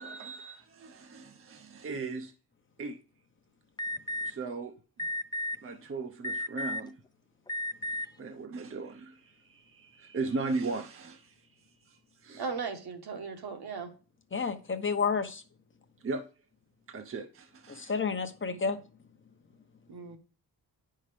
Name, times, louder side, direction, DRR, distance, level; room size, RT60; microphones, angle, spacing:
voice 1, 0.0-2.3 2.8-3.0 4.2-4.7 5.6-7.0 8.2-12.5 16.0-16.3 16.9-17.9, right 3 dB, 35° right, 0.7 m, -38 dB
Alarm, 3.8-4.3 5.0-5.6 6.2-6.9 7.5-8.1, left 1 dB, 10° left, 0.3 m, -33 dB
voice 2, 12.4-13.9 19.9-20.2, right 5 dB, 70° right, 1.6 m, -37 dB
voice 3, 14.3-15.4 17.7-18.8, left 5 dB, 30° left, 0.9 m, -30 dB
9.8 x 5.6 x 3.3 m
wide cardioid pair, 125°, 39 cm